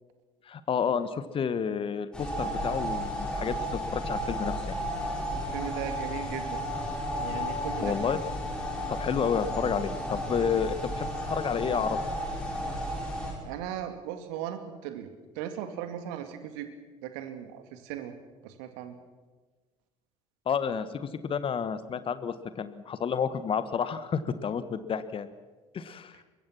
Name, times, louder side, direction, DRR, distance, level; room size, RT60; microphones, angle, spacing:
voice 1, 0.5-4.8 7.8-8.2 8.9-12.0 20.4-25.3 25.7-26.2, left 7 dB, 35° left, 13 dB, 1.5 m, -30 dB
sound 1, 2.1-13.3, equal, 5° left, 8.0 m, -33 dB
voice 2, 5.4-6.6 7.2-8.0 13.4-15.1 15.4-16.7 17.0-18.1 18.4-18.9, right 10 dB, 60° right, 8 dB, 2.3 m, -37 dB
24.0 x 22.0 x 6.1 m, 1.3 s
figure-of-eight pair, 60°, 16 cm